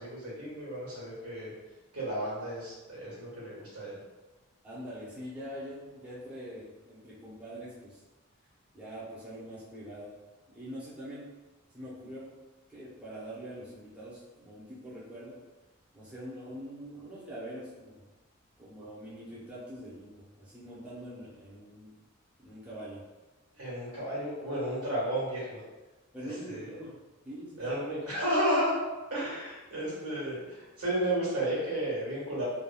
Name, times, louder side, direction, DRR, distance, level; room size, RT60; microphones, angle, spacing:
voice 1, 0.0-1.5 1.9-4.0 23.6-25.6 26.2-26.6 27.6-28.8 29.1-32.4, right 1 dB, 90° right, -7 dB, 1.4 m, -32 dB
voice 2, 4.6-8.0 8.7-10.1 10.5-11.2 11.7-12.3 12.7-15.4 15.9-18.0 18.6-21.9 22.4-23.0 26.1-27.0 27.2-27.8, equal, 5° right, -10 dB, 0.6 m, -44 dB
3.4 x 2.2 x 2.2 m, 1.2 s
head